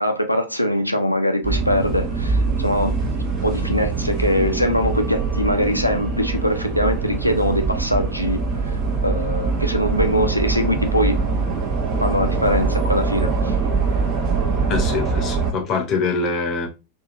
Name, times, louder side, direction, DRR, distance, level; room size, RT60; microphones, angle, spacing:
voice 1, 0.0-2.9 3.4-8.4 8.7-8.8 9.0-11.2 12.0-13.5, equal, 90° left, 0.4 m, -22 dB
sound 1, 1.4-15.5, right 4 dB, 40° right, 0.8 m, -23 dB
voice 2, 14.7-16.7, left 4 dB, 35° left, 0.7 m, -24 dB
2.8 x 2.7 x 2.5 m
figure-of-eight pair, 90°, 0 cm